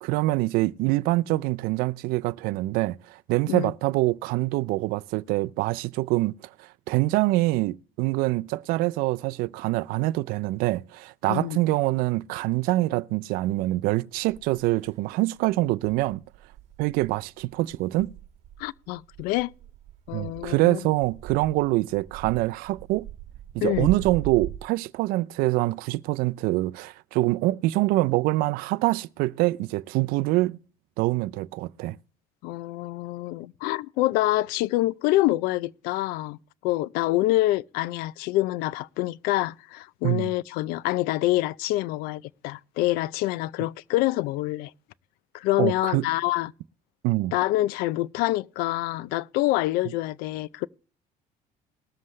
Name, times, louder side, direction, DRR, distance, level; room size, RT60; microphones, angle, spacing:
voice 1, 0.0-6.3 6.6-16.2 16.8-18.1 20.1-23.1 23.5-30.6 31.0-32.0 40.0-40.3 45.6-46.1 47.0-47.3, right 19 dB, 80° right, 0.4 m, -25 dB
voice 2, 11.3-11.6 18.6-19.5 20.1-20.8 23.6-23.9 32.4-44.7 45.3-46.5 47.3-50.7, left 17 dB, 85° left, 0.5 m, -26 dB
sound 1, 13.7-13.8 14.3-14.9 15.4-24.6, right 12 dB, 50° right, 1.4 m, -40 dB
20.5 x 7.5 x 3.2 m
cardioid pair, 135°, 15 cm